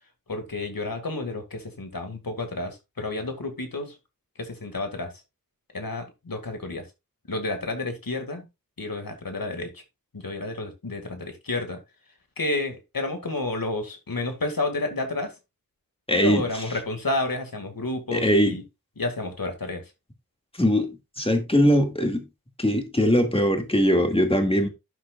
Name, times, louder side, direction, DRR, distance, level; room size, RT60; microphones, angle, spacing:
voice 1, 0.3-4.0 4.4-5.1 5.7-6.9 7.3-8.5 8.8-9.8 10.1-11.8 12.4-15.4 16.1-18.6 19.0-19.9, left 2 dB, 85° left, 2.2 m, -30 dB
voice 2, 16.1-16.4 18.1-18.6 20.6-20.9 21.2-22.2 22.6-24.7, equal, 15° left, 2.2 m, -21 dB
11.5 x 6.6 x 2.5 m
wide cardioid pair, 50°, 34 cm